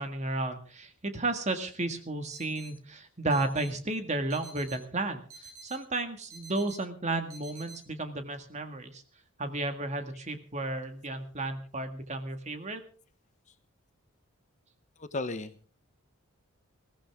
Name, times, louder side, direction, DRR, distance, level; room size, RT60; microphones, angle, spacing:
voice 1, 0.0-9.0 9.4-12.8, right 2 dB, 30° right, 8 dB, 1.8 m, -33 dB
sound 1, 2.3-2.7 3.3-3.7 4.3-4.8 5.3-5.8 6.3-6.8 7.3-7.8, right 4 dB, 75° right, 7.5 m, -49 dB
voice 2, 15.0-15.7, left 2 dB, 35° left, 11 dB, 0.9 m, -35 dB
20.5 x 15.5 x 3.6 m, 0.39 s
head